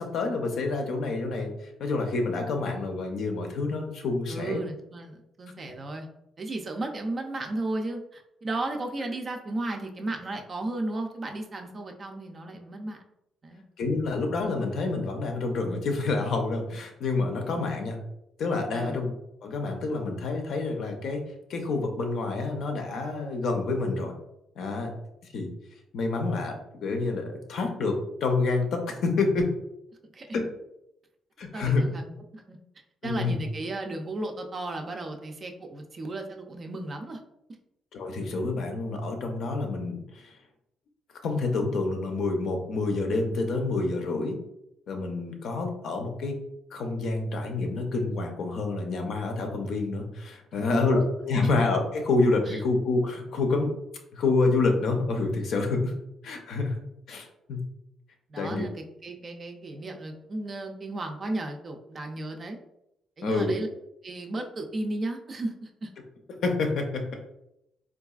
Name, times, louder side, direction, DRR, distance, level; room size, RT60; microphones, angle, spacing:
voice 1, 0.0-1.5 1.8-4.6 13.8-18.0 18.4-19.1 19.4-21.2 21.5-24.1 24.6-24.9 25.3-25.5 25.9-29.5 30.3-30.4 31.4-31.8 33.0-33.4 37.9-40.3 41.2-44.4 44.9-46.4 46.7-53.7 54.1-55.9 56.2-56.8 57.1-57.6 58.4-58.6 63.2-63.6 66.4-67.1, left 3 dB, 65° left, 4 dB, 0.6 m, -28 dB
voice 2, 4.3-6.1 6.4-13.0 13.4-13.6 18.7-19.0 30.1-30.3 31.5-32.6 33.0-37.2 52.5-52.6 58.3-62.6 63.2-63.7 64.0-65.9, right 2 dB, 35° right, 3 dB, 0.4 m, -34 dB
3.8 x 2.4 x 2.3 m, 0.84 s
cardioid pair, 135°, 0 cm